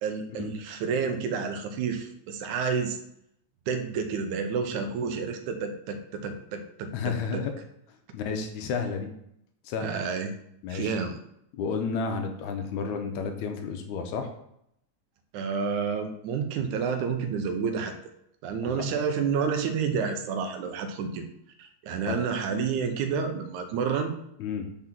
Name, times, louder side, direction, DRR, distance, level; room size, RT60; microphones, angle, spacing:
voice 1, 0.0-3.0 3.7-7.5 9.8-10.3 10.7-11.2 15.3-17.9 18.4-21.2 21.6-24.1, right 6 dB, 85° right, 7 dB, 2.2 m, -30 dB
voice 2, 6.9-7.5 8.1-9.1 9.7-9.9 10.6-10.9 11.5-14.3 18.6-18.8 22.1-22.2 24.4-24.7, left 5 dB, 80° left, 5 dB, 2.1 m, -31 dB
5.8 x 3.8 x 5.9 m, 0.75 s
omnidirectional pair, 3.4 m